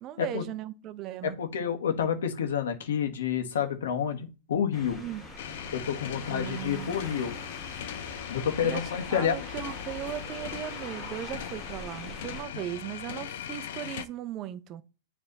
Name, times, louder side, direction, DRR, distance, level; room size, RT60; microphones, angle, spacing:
voice 1, 0.0-1.4 5.0-5.2 6.3-7.1 8.6-14.8, right 11 dB, 30° right, 0.6 m, -37 dB
voice 2, 1.2-5.0 5.7-7.3 8.3-9.4 12.5-12.6, left 8 dB, 80° left, 1.4 m, -29 dB
sound 1, 4.7-12.4, left 2 dB, 20° left, 2.1 m, -43 dB
sound 2, 5.4-14.1, left 10 dB, 60° left, 0.7 m, -40 dB
7.8 x 3.4 x 4.0 m
supercardioid pair, 155°, 0 cm